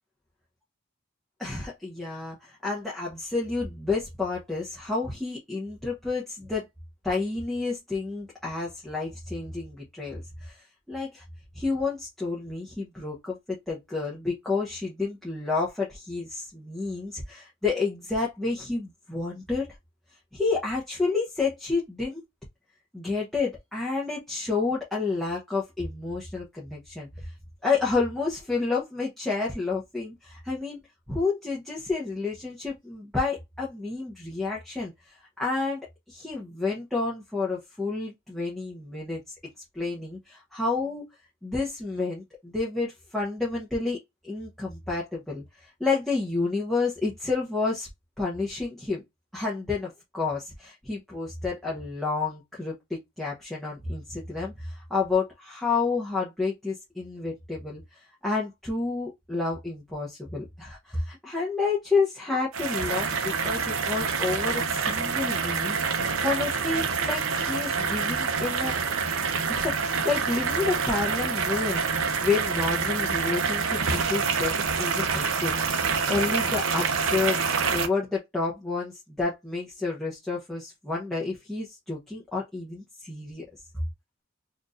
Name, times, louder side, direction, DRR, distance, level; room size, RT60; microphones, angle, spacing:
voice 1, 1.4-6.7 7.0-11.2 11.5-19.7 20.3-22.2 22.9-27.3 27.6-35.8 36.1-39.3 39.7-41.1 41.4-44.0 44.2-47.9 48.2-49.0 49.3-68.7 69.5-71.8 72.2-77.4 77.7-83.4, left 3 dB, ahead, 0.9 m, -30 dB
sound 1, 62.5-77.9, right 5 dB, 90° right, 0.7 m, -27 dB
4.4 x 2.5 x 2.5 m
head